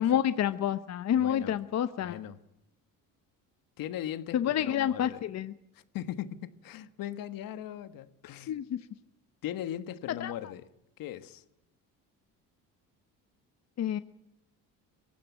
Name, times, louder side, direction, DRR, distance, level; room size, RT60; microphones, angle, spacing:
voice 1, 0.0-2.2 4.3-5.5 8.5-8.8 10.2-10.3 13.8-14.0, left 10 dB, 50° left, 0.9 m, -28 dB
voice 2, 1.1-1.5 2.0-2.4 3.8-5.2 5.7-8.5 9.4-10.6 11.0-11.4, left 11 dB, 70° left, 1.5 m, -39 dB
23.0 x 16.5 x 9.2 m
cardioid pair, 95°, 35 cm